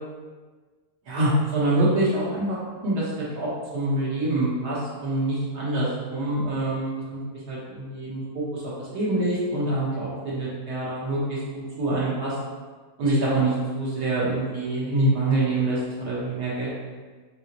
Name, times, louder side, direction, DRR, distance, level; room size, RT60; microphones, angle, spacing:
voice 1, 1.1-2.6 2.8-3.1 3.4-7.2 7.5-12.3 13.0-16.7, right 2 dB, 85° right, -7 dB, 1.8 m, -25 dB
4.7 x 3.0 x 3.0 m, 1.4 s
omnidirectional pair, 1.7 m